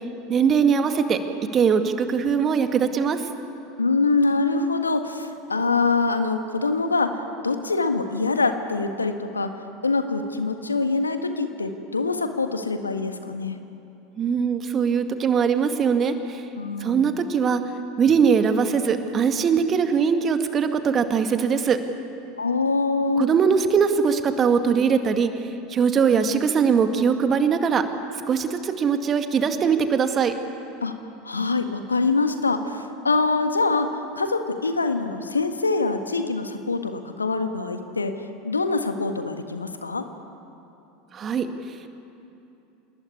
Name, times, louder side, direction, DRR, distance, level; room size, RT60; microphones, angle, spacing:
voice 1, 0.3-1.2 1.5-3.2 14.2-16.4 16.8-17.6 18.0-21.8 23.2-25.3 25.7-27.8 28.3-30.3 41.1-41.5, right 6 dB, 30° right, 7 dB, 2.2 m, -21 dB
voice 2, 3.8-7.2 7.4-9.5 9.8-13.6 16.6-17.2 22.4-23.2 30.8-30.9 31.2-38.1 38.4-40.0, left 3 dB, 80° left, 7 dB, 1.7 m, -24 dB
28.0 x 20.0 x 9.7 m, 2.8 s
figure-of-eight pair, 75°, 0 cm